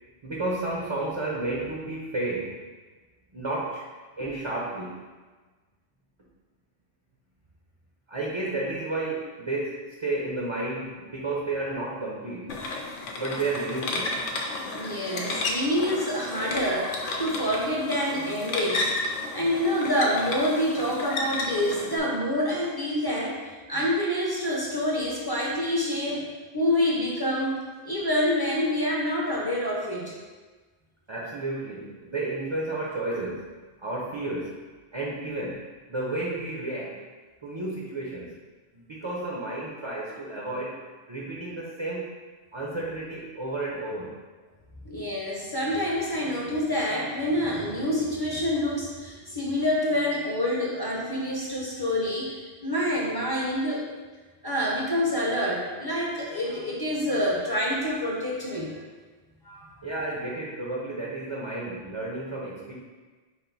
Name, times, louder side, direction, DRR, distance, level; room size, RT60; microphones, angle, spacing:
voice 1, 0.2-2.5 3.3-3.8 4.2-4.9 8.1-12.5 13.1-14.1 31.1-33.5 33.8-34.5 34.9-35.6 35.9-37.0 37.4-38.3 38.7-40.8 41.1-42.1 42.5-44.1 59.8-62.7, right 2 dB, 35° right, -5 dB, 0.5 m, -32 dB
sound 1, 12.5-22.0, left 2 dB, 90° left, 1.0 m, -32 dB
voice 2, 14.7-18.9 19.3-23.4 23.7-27.6 27.8-30.1 44.8-53.8 54.4-58.7 59.4-59.7, left 1 dB, 25° left, -4 dB, 0.6 m, -27 dB
5.1 x 2.5 x 3.9 m, 1.3 s
omnidirectional pair, 1.2 m